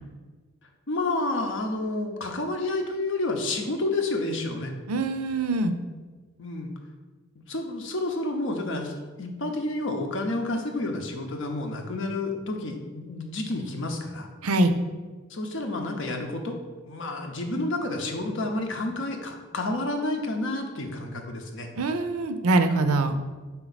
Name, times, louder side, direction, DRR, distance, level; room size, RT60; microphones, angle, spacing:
voice 1, 0.9-4.7 6.4-6.7 7.5-14.3 15.3-16.6 16.8-21.7, left 2 dB, 60° left, 3 dB, 0.8 m, -30 dB
voice 2, 4.9-5.7 14.4-14.7 21.8-23.1, right 2 dB, 90° right, 9 dB, 0.5 m, -23 dB
5.5 x 4.6 x 4.0 m, 1.3 s
head